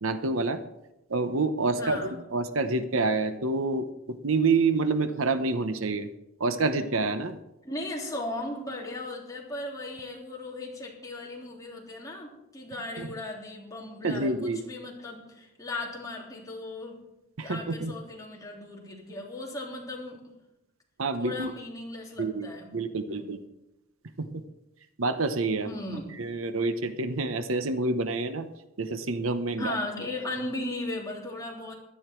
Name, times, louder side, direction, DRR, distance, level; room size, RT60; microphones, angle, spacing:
voice 1, 0.0-0.6 1.1-6.1 6.4-7.4 13.0-13.1 14.0-14.7 17.4-17.9 21.0-21.5 22.2-23.4 24.2-24.3 25.0-25.7 26.2-28.5 28.8-29.7, right 3 dB, 70° right, 10 dB, 0.9 m, -27 dB
voice 2, 1.8-2.2 7.6-17.0 17.4-20.3 21.2-22.7 23.1-23.3 25.6-26.1 29.5-31.7, left 2 dB, 15° left, -2 dB, 3.4 m, -37 dB
16.5 x 12.0 x 4.6 m, 0.91 s
head